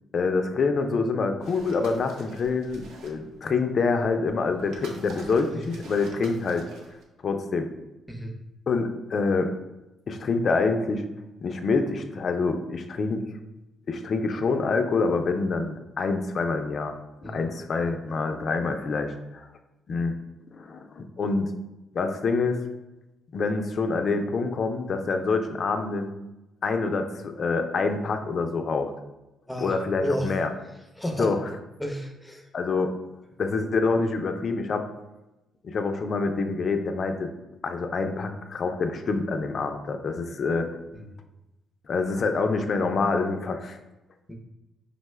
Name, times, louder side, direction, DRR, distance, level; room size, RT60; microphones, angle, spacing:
voice 1, 0.1-6.7 7.2-7.7 8.7-9.5 10.1-11.0 11.4-13.2 13.9-19.5 19.9-20.2 20.5-21.5 21.9-22.6 23.3-26.1 26.6-28.9 29.6-30.5 31.2-31.5 32.5-32.9 33.4-34.9 35.6-37.3 37.6-40.7 41.9-43.8, left 4 dB, 50° left, 6 dB, 0.4 m, -26 dB
sound 1, 1.4-3.4 4.0-7.0, right 2 dB, 80° right, 0.6 m, -45 dB
voice 2, 29.5-30.3 31.0-31.3 31.8-32.5 40.9-41.0 44.3-44.4, equal, 5° left, 2 dB, 0.7 m, -32 dB
5.2 x 2.2 x 3.2 m, 1.0 s
cardioid pair, 90°, 0 cm